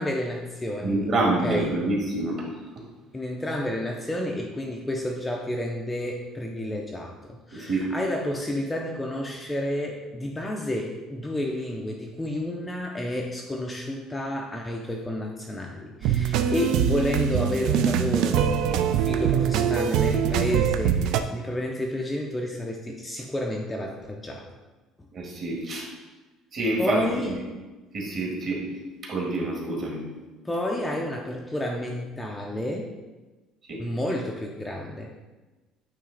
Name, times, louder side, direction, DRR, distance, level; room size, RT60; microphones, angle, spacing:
voice 1, 0.0-1.0 1.4-1.8 3.1-24.5 25.7-25.9 26.8-27.3 30.4-32.9 33.8-35.1, left 1 dB, 10° left, 0 dB, 0.4 m, -30 dB
voice 2, 0.8-2.5 7.5-7.9 25.1-25.8 26.5-27.3 27.9-28.6 29.1-30.0 33.7-33.8, right 2 dB, 35° right, -2 dB, 1.5 m, -27 dB
sound 1, 16.0-21.2, right 8 dB, 60° right, 0.4 m, -23 dB
8.6 x 3.3 x 3.8 m, 1.2 s
cardioid pair, 165°, 0 cm